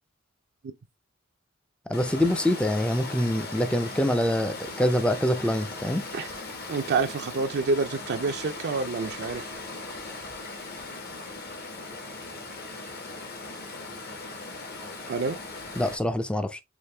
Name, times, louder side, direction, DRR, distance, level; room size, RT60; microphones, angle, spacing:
Water, 1.9-16.0, left 3 dB, 50° left, 1.1 m, -39 dB
voice 1, 1.9-6.0 15.8-16.6, left 1 dB, 5° left, 0.4 m, -25 dB
voice 2, 6.7-9.5 15.1-15.4, right 4 dB, 55° right, 0.4 m, -28 dB
5.0 x 2.6 x 3.2 m
head